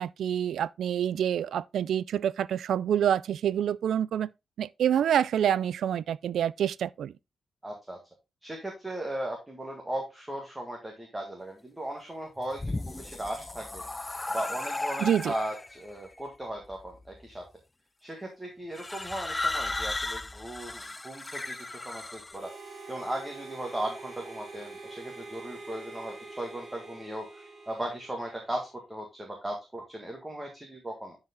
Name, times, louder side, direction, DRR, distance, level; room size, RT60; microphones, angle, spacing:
voice 1, 0.0-4.3 4.6-7.1 15.0-15.3, right 9 dB, 80° right, 0.3 m, -27 dB
voice 2, 7.6-8.0 8.4-13.8 14.3-17.4 18.0-22.5 22.9-31.2, right 1 dB, 10° right, 1.7 m, -37 dB
sound 1, 12.4-15.8 16.7-17.2 18.7-22.4, left 2 dB, 15° left, 0.3 m, -35 dB
Harmonica, 22.3-28.7, right 3 dB, 25° right, 4.6 m, -45 dB
10.5 x 4.8 x 3.6 m
wide cardioid pair, 170°, 0 cm